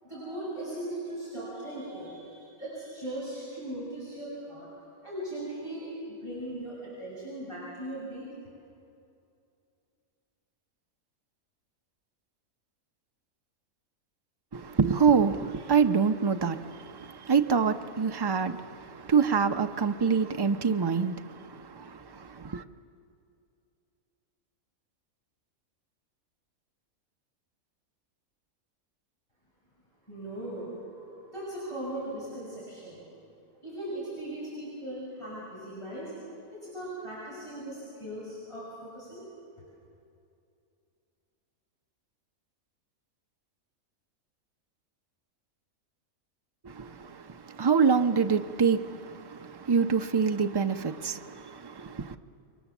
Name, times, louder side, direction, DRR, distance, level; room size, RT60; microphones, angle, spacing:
voice 1, 0.0-4.7 5.0-5.9 6.2-8.3 30.1-33.0 33.6-36.1 36.5-39.2, right 1 dB, 20° left, 6.9 m, -38 dB
voice 2, 14.5-22.6 46.6-52.2, right 6 dB, 35° right, 0.4 m, -26 dB
28.0 x 23.0 x 7.2 m
omnidirectional pair, 1.5 m